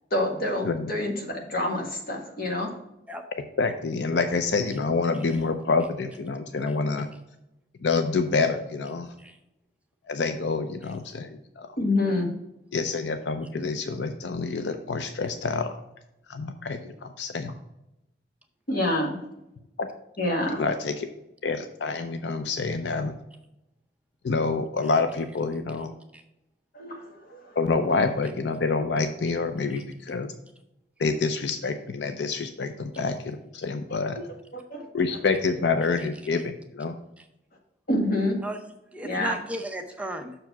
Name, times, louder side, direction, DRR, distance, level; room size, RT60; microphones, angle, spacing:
voice 1, 0.1-2.7 11.8-12.3 18.7-19.2 20.2-20.6 26.7-27.6 34.5-34.9 37.9-38.4 39.0-39.4, left 1 dB, 55° left, 0 dB, 1.7 m, -27 dB
voice 2, 3.6-7.1 7.8-9.1 10.1-11.7 12.7-15.7 16.3-17.5 19.8-19.9 20.6-21.1 21.4-23.2 24.2-25.9 27.6-30.3 31.0-34.2 34.9-37.0, left 4 dB, 80° left, 8 dB, 0.6 m, -27 dB
voice 3, 38.9-40.4, right 1 dB, 10° right, 4 dB, 0.6 m, -35 dB
6.5 x 4.7 x 5.8 m, 0.87 s
head